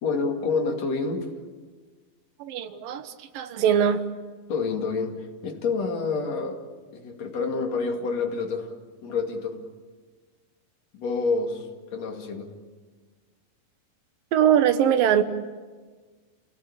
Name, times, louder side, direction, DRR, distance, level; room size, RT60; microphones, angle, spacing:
voice 1, 0.0-1.3 4.5-6.6 6.9-8.7 9.0-9.6 10.9-11.7 11.9-12.5, left 4 dB, 50° left, 3.4 m, -28 dB
voice 2, 2.4-4.1 14.3-15.2, right 9 dB, 75° right, 2.9 m, -22 dB
29.5 x 18.0 x 8.6 m
omnidirectional pair, 4.1 m